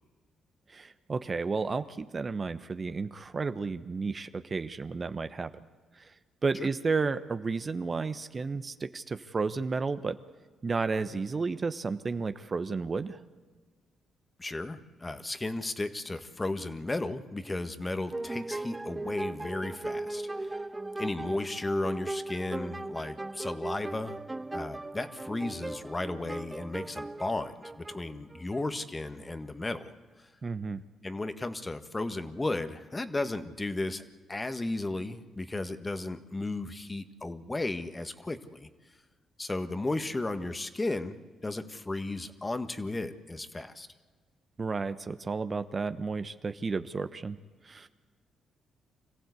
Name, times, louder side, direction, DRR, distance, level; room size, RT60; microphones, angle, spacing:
voice 1, 0.7-5.5 6.0-6.1 6.4-10.2 10.6-13.2 30.4-30.8 44.6-47.4 47.6-47.9, right 4 dB, 40° right, 11 dB, 1.0 m, -32 dB
voice 2, 14.4-20.6 21.0-24.2 24.5-29.9 30.2-30.3 31.0-34.0 34.3-38.7 39.4-41.1 41.4-43.9, left 2 dB, 25° left, 9 dB, 1.6 m, -34 dB
sound 1, 18.1-28.6, right 2 dB, 20° right, 0.5 m, -38 dB
25.5 x 15.5 x 8.3 m, 1.5 s
hypercardioid pair, 50°, 0 cm